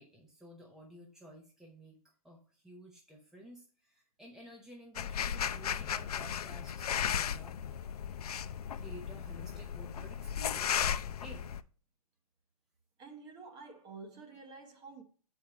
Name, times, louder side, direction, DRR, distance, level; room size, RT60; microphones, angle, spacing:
voice 1, 0.0-2.0 2.2-7.6 8.7-11.5, equal, ahead, 0.8 m, -53 dB
sound 1, 5.0-11.6, left 8 dB, 80° left, 0.5 m, -35 dB
voice 2, 13.0-15.0, right 4 dB, 20° right, 1.1 m, -49 dB
7.2 x 4.7 x 4.9 m
hypercardioid pair, 145°, 19 cm